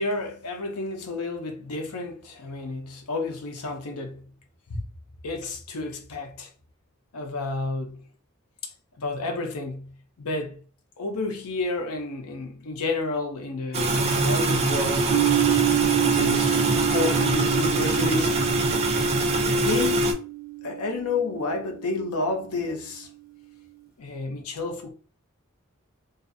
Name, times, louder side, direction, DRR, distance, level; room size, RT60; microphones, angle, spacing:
voice 1, 0.0-4.2 4.7-4.8 5.2-6.5 7.1-8.0 8.6-8.7 9.0-10.6 11.0-15.1 16.0-18.3 19.5-20.1 20.6-23.1 24.0-24.9, left 3 dB, 85° left, 0.6 m, -30 dB
sound 1, 13.7-20.1, right 2 dB, 30° right, 0.3 m, -23 dB
sound 2, 15.1-21.8, right 20 dB, 70° right, 0.9 m, -28 dB
2.5 x 2.4 x 2.6 m
head